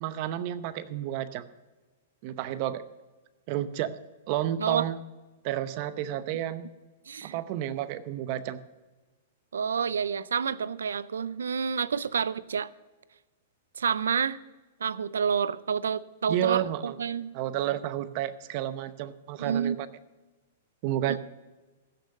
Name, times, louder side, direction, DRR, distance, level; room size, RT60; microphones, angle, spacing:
voice 1, 0.0-1.5 2.2-2.8 3.5-4.0 4.3-5.0 5.4-6.7 7.2-8.6 16.3-17.0 17.3-19.8 20.8-21.2, right 12 dB, 50° right, 13 dB, 0.8 m, -31 dB
voice 2, 7.1-7.4 9.5-12.7 13.8-14.4 14.8-17.3 19.4-19.8 21.1-21.2, right 6 dB, 90° right, 19 dB, 0.5 m, -29 dB
15.5 x 6.6 x 6.5 m, 1.2 s
hypercardioid pair, 130°, 0 cm